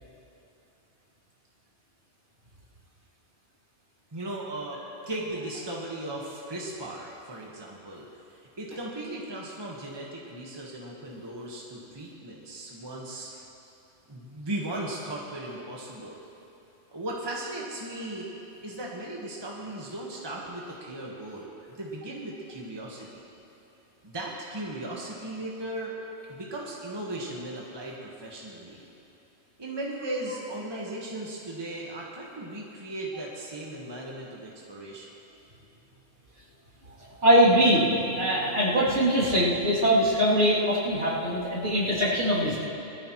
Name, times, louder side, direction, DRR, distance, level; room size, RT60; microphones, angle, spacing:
voice 1, 4.1-8.1 8.6-13.3 14.1-16.2 16.9-18.3 18.6-23.2 24.0-25.9 26.3-28.8 29.6-35.1, right 1 dB, 20° right, -3 dB, 1.4 m, -37 dB
voice 2, 37.2-37.9 38.1-42.6, equal, 60° right, -8 dB, 3.3 m, -22 dB
20.0 x 13.5 x 3.1 m, 2.9 s
omnidirectional pair, 1.3 m